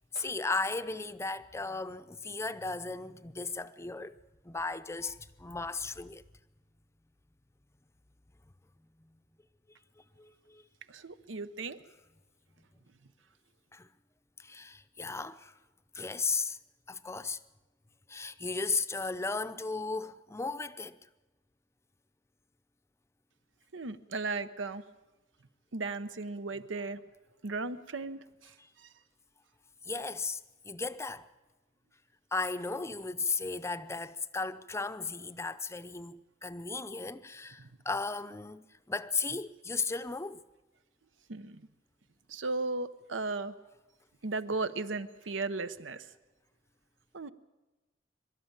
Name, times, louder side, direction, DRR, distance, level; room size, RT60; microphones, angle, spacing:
voice 1, 0.1-4.1 4.4-6.2 10.2-10.6 13.7-13.9 14.4-15.5 15.9-16.6 16.9-17.4 18.1-21.0 29.8-31.3 32.3-40.4, left 4 dB, 15° left, 0.6 m, -35 dB
voice 2, 10.9-11.8 23.7-24.8 25.7-27.0 27.4-28.9 37.6-37.7 41.3-41.7 42.3-43.5 44.2-46.1 47.1-47.3, right 3 dB, 85° right, 0.9 m, -36 dB
23.0 x 12.5 x 8.8 m
head